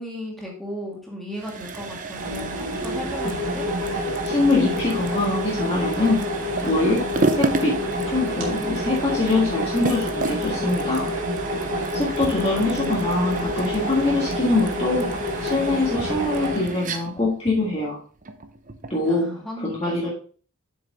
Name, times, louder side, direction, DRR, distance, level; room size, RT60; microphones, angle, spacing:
voice 1, 0.0-3.7 12.2-12.9 19.0-20.1, equal, ahead, -3 dB, 2.3 m, -35 dB
sound 1, 1.3-19.0, right 3 dB, 35° right, 0.7 m, -32 dB
sound 2, 2.1-16.6, equal, 60° right, 2.8 m, -28 dB
voice 2, 4.2-11.1 11.9-18.0 18.9-19.3 19.6-20.1, left 2 dB, 25° left, -4 dB, 1.6 m, -24 dB
7.5 x 6.2 x 3.7 m, 0.41 s
head